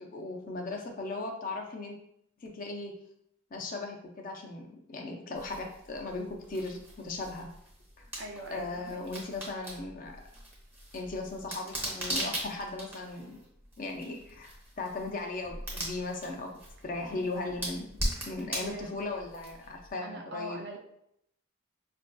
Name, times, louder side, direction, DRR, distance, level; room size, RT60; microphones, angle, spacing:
voice 1, 0.0-1.9 2.4-2.9 3.5-7.5 8.5-10.1 10.9-13.4 13.8-16.6 16.8-17.9 18.2-20.6, left 2 dB, 40° left, 2 dB, 0.4 m, -37 dB
sound 1, 5.3-19.9, right 1 dB, 10° right, 0.7 m, -40 dB
voice 2, 8.2-9.0 18.5-18.9 20.0-20.8, right 1 dB, 50° right, 1 dB, 0.6 m, -41 dB
5.0 x 2.6 x 2.2 m, 0.74 s
head